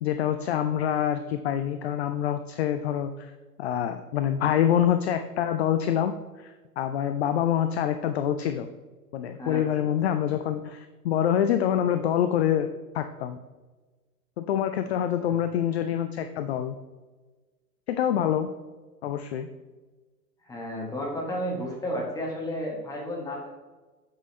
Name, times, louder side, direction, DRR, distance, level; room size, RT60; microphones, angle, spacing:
voice 1, 0.0-3.3 3.6-8.7 9.1-13.4 14.4-16.8 17.9-18.5 19.0-19.5, left 10 dB, 45° left, 8 dB, 0.4 m, -26 dB
voice 2, 9.4-9.9 15.2-15.4 20.4-23.5, equal, 5° left, -2 dB, 1.5 m, -32 dB
7.9 x 5.5 x 3.2 m, 1.3 s
figure-of-eight pair, 105°, 48 cm